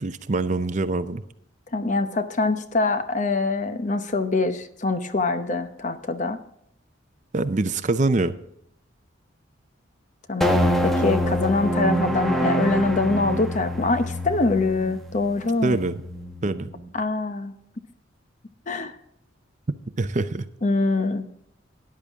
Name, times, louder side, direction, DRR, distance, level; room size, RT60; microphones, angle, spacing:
voice 1, 0.0-1.2 7.3-8.3 15.6-16.0 16.4-16.7 20.0-20.5, right 2 dB, 40° right, 12 dB, 0.6 m, -24 dB
voice 2, 1.7-6.4 10.3-15.8 16.9-17.5 18.7-19.0 20.6-21.3, left 3 dB, 40° left, 10 dB, 0.8 m, -24 dB
sound 1, 10.4-16.9, equal, ahead, 1.0 m, -26 dB
13.5 x 10.5 x 3.6 m, 0.75 s
head